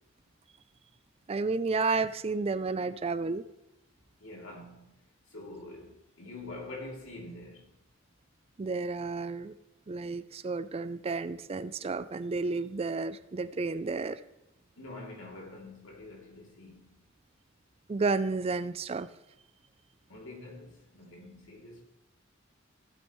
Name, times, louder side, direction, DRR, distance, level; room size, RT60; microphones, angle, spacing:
voice 1, 1.3-3.4 8.6-9.5 9.9-14.2 17.9-19.1, right 4 dB, 30° right, 0.4 m, -31 dB
voice 2, 4.2-5.0 5.3-7.7 14.8-16.9 20.1-21.8, left 2 dB, 80° left, 3.0 m, -45 dB
15.0 x 8.6 x 3.1 m
head